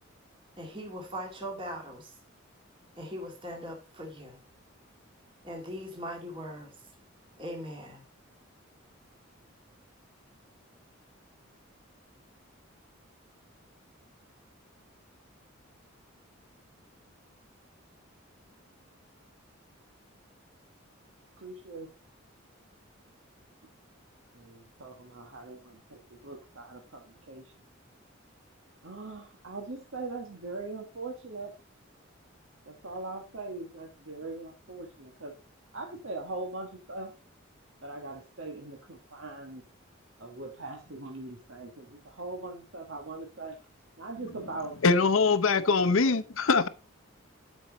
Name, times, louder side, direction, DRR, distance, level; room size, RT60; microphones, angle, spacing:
voice 1, 0.6-2.2 3.0-4.4 5.4-6.7 7.4-8.0, equal, 25° right, 2.1 m, -40 dB
voice 2, 21.4-21.9 24.3-27.5 28.8-31.5 32.7-35.3 35.7-37.1 37.8-39.6 40.2-43.6 44.0-44.8 45.6-46.1, right 3 dB, 70° right, 1.4 m, -41 dB
voice 3, 44.8-46.7, left 4 dB, 80° left, 0.7 m, -23 dB
12.0 x 5.4 x 3.9 m
head